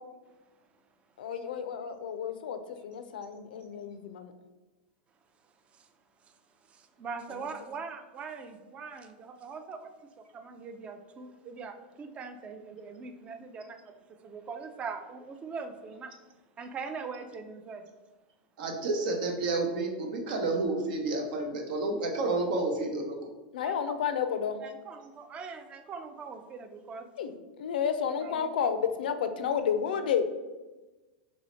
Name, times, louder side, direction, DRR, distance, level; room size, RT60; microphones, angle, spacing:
voice 1, 1.2-4.3 7.4-7.5 23.5-24.6 27.2-30.4, left 7 dB, 85° left, 9 dB, 0.4 m, -31 dB
voice 2, 6.7-9.9 10.2-13.8 14.1-16.1 16.6-17.8 23.6-23.8 24.6-27.1 28.2-28.5, right 5 dB, 25° right, 7 dB, 0.4 m, -41 dB
voice 3, 18.6-23.1, right 2 dB, 75° right, 3 dB, 0.8 m, -30 dB
3.1 x 2.8 x 4.2 m, 1.2 s
supercardioid pair, 130°, 5 cm